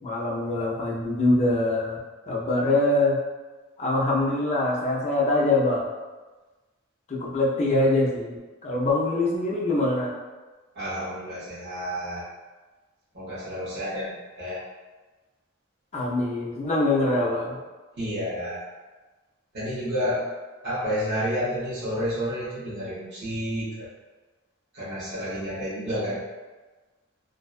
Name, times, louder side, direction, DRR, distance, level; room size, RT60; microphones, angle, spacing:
voice 1, 0.0-2.0 2.3-3.2 3.8-5.9 7.1-10.1 15.9-17.6, left 2 dB, 35° left, -4 dB, 0.5 m, -24 dB
voice 2, 10.7-12.3 13.1-14.6 18.0-18.7 19.5-20.3 20.6-23.9 24.7-26.2, equal, 55° right, -11 dB, 0.9 m, -30 dB
2.6 x 2.2 x 2.3 m, 1.2 s
head